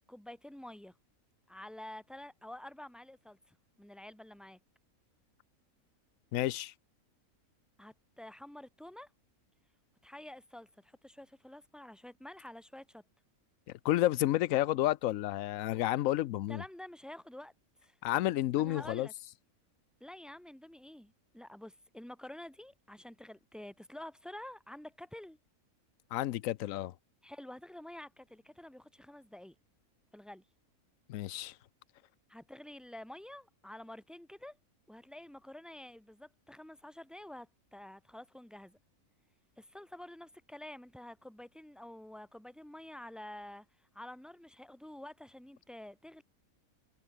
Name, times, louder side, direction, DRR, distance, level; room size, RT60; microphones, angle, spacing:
voice 1, 0.1-0.9 1.5-4.6 7.8-9.1 10.0-13.0 16.5-17.5 17.8-18.0 18.6-19.1 20.0-25.4 27.2-29.5 30.1-30.4 32.3-34.6 34.9-38.8 39.6-43.7 43.9-46.2, left 1 dB, ahead, 0.8 m, -49 dB
voice 2, 6.3-6.7 13.8-16.6 18.0-19.1 26.1-26.9 31.1-31.5, left 14 dB, 70° left, 0.9 m, -30 dB
omnidirectional pair, 1.5 m